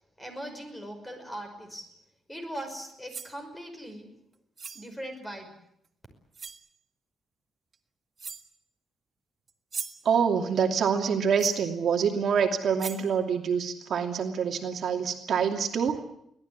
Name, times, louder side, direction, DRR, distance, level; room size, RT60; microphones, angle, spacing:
voice 1, 0.2-1.9 2.3-4.2 4.7-5.5, right 1 dB, 10° left, 5 dB, 5.5 m, -40 dB
sound 1, 2.9-3.4 4.6-4.9 5.8-5.9 6.3-6.7 7.7-7.8 8.2-8.6 9.5-10.1 11.4-11.7 12.4-12.5 12.8-13.1, right 5 dB, 35° right, 1.7 m, -39 dB
voice 2, 10.0-16.0, right 7 dB, 55° right, 3 dB, 2.7 m, -26 dB
24.5 x 18.0 x 9.6 m, 0.75 s
cardioid pair, 160°, 0 cm